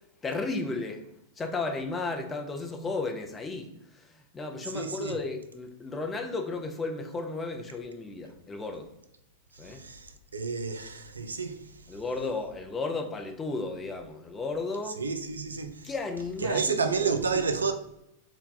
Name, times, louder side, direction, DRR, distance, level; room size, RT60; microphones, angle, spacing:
voice 1, 0.2-1.1 1.4-8.9 9.6-9.8 11.9-15.0 15.8-17.4, left 3 dB, 15° left, 0.5 m, -34 dB
voice 2, 4.7-5.2 9.6-11.7 15.0-15.9 16.4-17.7, right 5 dB, 80° right, 0.3 m, -30 dB
2.8 x 2.2 x 3.8 m
figure-of-eight pair, 95°, 0 cm